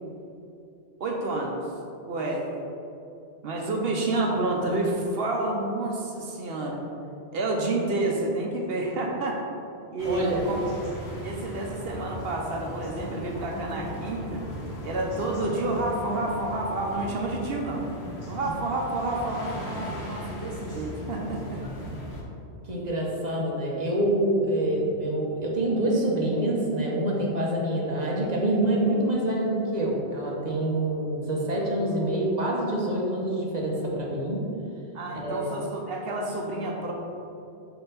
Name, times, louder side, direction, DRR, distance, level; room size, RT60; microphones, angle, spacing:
voice 1, 1.0-1.7 2.1-2.5 3.4-6.8 7.3-9.4 9.9-10.6 11.2-14.4 14.8-17.8 18.3-21.6 34.9-36.9, right 2 dB, 65° right, 0 dB, 0.9 m, -29 dB
sound 1, 10.0-22.2, equal, 70° left, 1.2 m, -37 dB
voice 2, 10.0-10.4 22.6-34.4 35.1-35.5, right 1 dB, 40° right, -3 dB, 1.0 m, -26 dB
5.5 x 4.4 x 4.0 m, 2.7 s
omnidirectional pair, 1.1 m